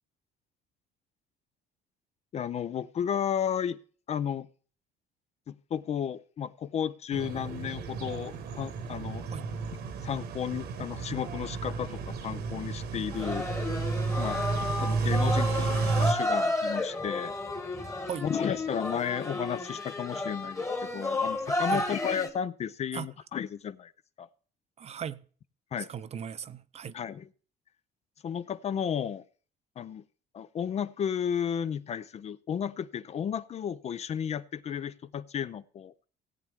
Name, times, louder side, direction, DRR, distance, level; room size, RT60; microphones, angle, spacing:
voice 1, 2.3-3.8 4.1-4.5 5.5-9.3 10.0-13.5 14.2-14.4 14.8-17.3 18.2-23.9 24.2-24.3 25.7-25.9 26.9-27.3 28.2-29.2 29.8-30.0 30.3-35.9, left 8 dB, 40° left, 0.4 m, -33 dB
sound 1, 7.1-16.1, right 4 dB, 75° right, 1.3 m, -32 dB
sound 2, 13.1-22.3, left 2 dB, 15° left, 1.4 m, -32 dB
voice 2, 24.8-25.2 25.9-26.9, right 8 dB, 40° right, 0.5 m, -37 dB
16.5 x 8.2 x 3.5 m
cardioid pair, 110°, 17 cm